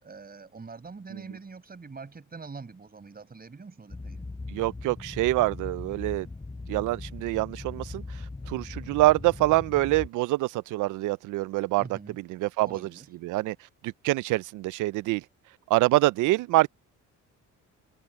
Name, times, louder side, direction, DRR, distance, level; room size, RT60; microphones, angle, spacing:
voice 1, 0.0-4.2 11.8-12.2 12.6-13.1, right 4 dB, 30° right, 6.4 m, -44 dB
sound 1, 3.9-10.1, left 3 dB, 20° left, 4.7 m, -40 dB
voice 2, 4.5-6.3 6.7-12.9 13.2-13.6 13.8-15.2 15.7-16.7, right 18 dB, 90° right, 0.5 m, -26 dB
open air
cardioid pair, 90°, 30 cm